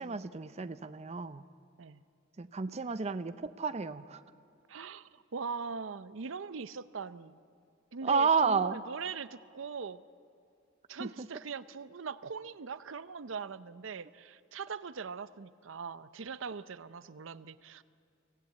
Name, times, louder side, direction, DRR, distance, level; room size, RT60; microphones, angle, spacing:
voice 1, 0.0-1.4 2.4-4.2 8.0-8.8 11.0-11.3, right 5 dB, 35° right, 12 dB, 0.5 m, -31 dB
voice 2, 4.7-7.4 7.9-10.0 10.9-17.8, right 5 dB, 75° right, 15 dB, 0.6 m, -41 dB
25.0 x 16.5 x 8.4 m, 2.5 s
head